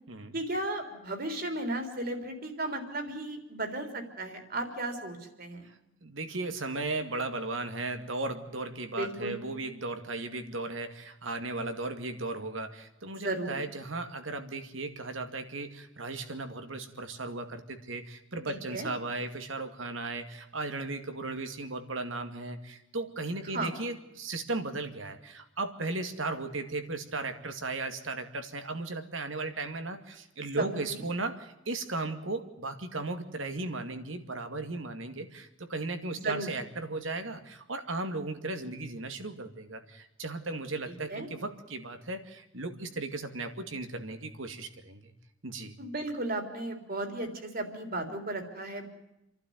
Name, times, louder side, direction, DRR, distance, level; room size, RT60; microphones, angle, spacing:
voice 1, 0.3-5.7 9.0-9.4 13.1-13.6 18.5-18.9 23.5-23.7 30.6-31.0 36.2-36.5 40.9-41.3 45.8-48.9, right 2 dB, 50° right, 6 dB, 3.8 m, -35 dB
voice 2, 6.0-45.1 45.4-45.8, right 2 dB, 85° right, 7 dB, 2.3 m, -36 dB
29.5 x 12.0 x 9.5 m, 0.88 s
head